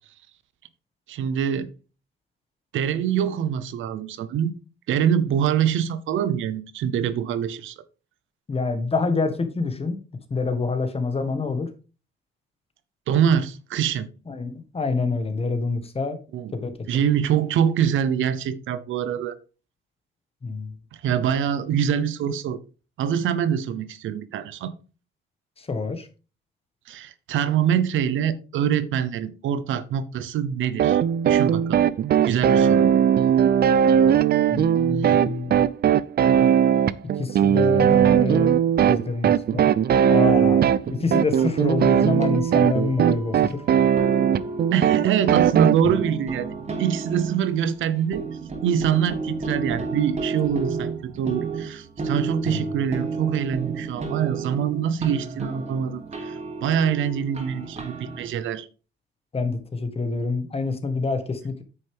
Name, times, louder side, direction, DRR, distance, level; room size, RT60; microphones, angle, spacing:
voice 1, 1.1-1.7 2.7-4.5 4.9-7.7 13.1-14.1 16.3-16.5 16.9-19.4 21.0-22.6 23.0-24.7 26.9-31.9 32.3-33.0 35.0-35.1 44.7-46.5 46.8-48.3 48.6-58.7, right 8 dB, 80° right, 0.9 m, -24 dB
voice 2, 8.5-10.0 10.3-11.7 14.3-16.2 16.5-16.7 20.4-20.7 25.6-26.1 34.5-35.7 37.2-38.6 38.9-39.6 40.1-40.6 40.9-43.6 52.4-52.7 59.3-61.6, left 4 dB, 30° left, 1.7 m, -26 dB
sound 1, 30.8-45.8, right 9 dB, 50° right, 0.5 m, -19 dB
sound 2, 40.1-58.3, right 4 dB, 35° right, 2.7 m, -33 dB
9.3 x 6.5 x 3.6 m
cardioid pair, 90°, 20 cm